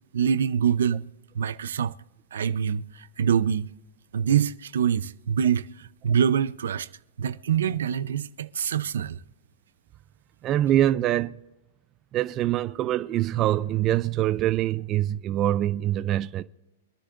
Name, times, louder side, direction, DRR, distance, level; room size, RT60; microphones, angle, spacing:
voice 1, 0.1-1.1 1.3-1.9 2.3-3.7 4.1-6.9 7.2-9.2, right 8 dB, 85° right, 0.7 m, -25 dB
voice 2, 10.4-11.4 12.1-16.4, right 13 dB, 30° right, 0.4 m, -24 dB
25.0 x 10.0 x 2.6 m
hypercardioid pair, 145°, 0 cm